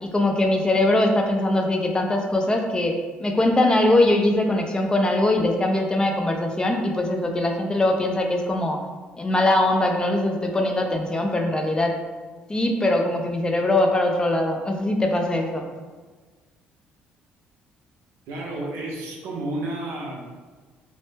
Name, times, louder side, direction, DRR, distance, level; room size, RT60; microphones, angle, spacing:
voice 1, 0.0-2.9 3.2-8.8 9.2-12.0 12.5-15.6, left 1 dB, 20° left, 3 dB, 0.3 m, -21 dB
voice 2, 18.3-20.2, right 2 dB, 80° right, -2 dB, 0.5 m, -31 dB
2.1 x 2.0 x 3.2 m, 1.4 s
supercardioid pair, 75°, 4 cm